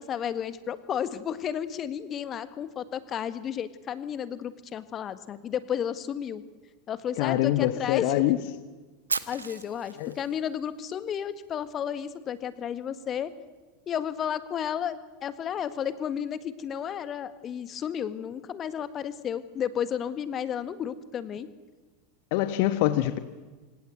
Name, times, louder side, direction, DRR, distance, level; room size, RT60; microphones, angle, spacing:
voice 1, 0.0-6.4 6.9-8.1 9.3-13.3 13.9-21.5, left 9 dB, 30° left, 13 dB, 1.7 m, -32 dB
voice 2, 7.2-8.4 10.0-10.1 22.3-23.2, left 14 dB, 50° left, 11 dB, 1.2 m, -24 dB
Fire, 9.1-11.2, right 4 dB, 75° right, 1.3 m, -35 dB
26.5 x 26.0 x 8.1 m, 1.3 s
figure-of-eight pair, 85°, 0 cm